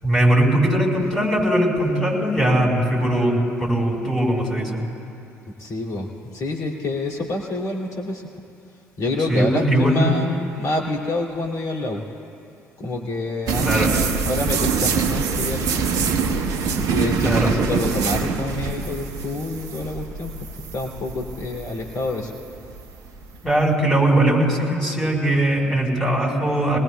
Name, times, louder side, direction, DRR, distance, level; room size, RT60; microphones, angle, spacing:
voice 1, 0.0-4.9 9.3-10.4 13.6-13.9 17.2-17.7 23.4-26.8, right 1 dB, 10° left, -3 dB, 4.6 m, -20 dB
voice 2, 5.6-8.2 9.0-12.0 12.8-15.8 16.9-20.3 20.7-22.3, left 2 dB, 55° left, -1 dB, 2.7 m, -27 dB
sound 1, 13.5-23.6, right 5 dB, 60° right, 1.0 m, -24 dB
25.5 x 19.5 x 2.3 m, 2.6 s
hypercardioid pair, 50°, 7 cm